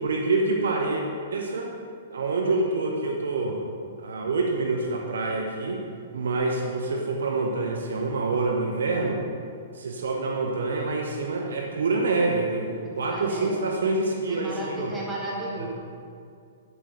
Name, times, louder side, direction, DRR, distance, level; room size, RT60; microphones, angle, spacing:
voice 1, 0.0-1.0 1.3-1.7 2.1-3.6 4.0-5.8 6.1-9.2 9.7-14.9 15.6-15.7, right 3 dB, 65° right, 1 dB, 0.9 m, -26 dB
voice 2, 12.8-13.8 14.3-15.7, right 1 dB, 10° right, -6 dB, 2.3 m, -34 dB
9.4 x 8.0 x 3.8 m, 2.3 s
figure-of-eight pair, 115°, 0 cm